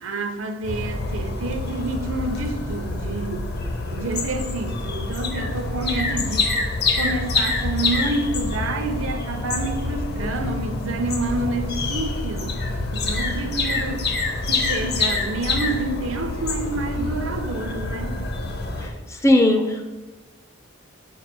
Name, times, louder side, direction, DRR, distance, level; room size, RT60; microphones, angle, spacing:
voice 1, 0.0-3.5 3.9-6.5 7.0-12.6 12.9-14.1 14.5-18.2, right 2 dB, 70° right, 7 dB, 0.7 m, -28 dB
sound 1, 0.6-18.9, left 3 dB, 50° left, 0.8 m, -26 dB
voice 2, 19.2-19.8, left 1 dB, 15° left, 6 dB, 0.4 m, -17 dB
4.7 x 4.6 x 6.0 m, 1.2 s
head